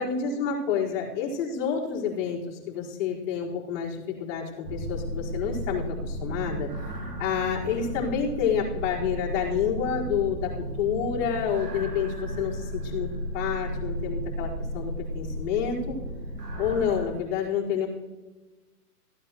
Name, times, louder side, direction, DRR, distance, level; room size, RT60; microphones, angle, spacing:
voice 1, 0.0-10.5 10.8-13.1 13.3-16.0 16.6-17.9, left 7 dB, 50° left, -6 dB, 4.3 m, -29 dB
sound 1, 4.6-17.1, right 1 dB, 90° right, 2.3 m, -34 dB
16.0 x 9.5 x 3.0 m, 1.2 s
hypercardioid pair, 140°, 46 cm